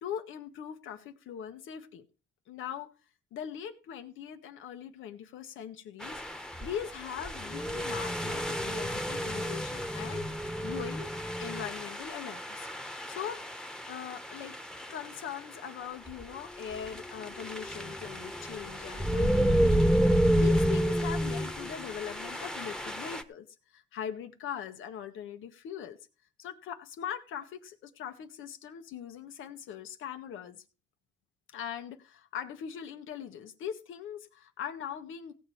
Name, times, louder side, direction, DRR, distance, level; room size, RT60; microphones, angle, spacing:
voice 1, 0.0-2.0 2.5-2.9 3.3-11.1 11.4-12.7 13.1-13.4 13.9-14.6 14.9-23.5 23.7-26.0 26.4-30.6 31.5-35.3, left 9 dB, 85° left, 8 dB, 1.6 m, -41 dB
sound 1, 6.0-15.1 16.1-16.3 16.6-23.2, equal, 5° left, 1.2 m, -30 dB
16.5 x 7.6 x 4.6 m, 0.35 s
cardioid pair, 90°, 20 cm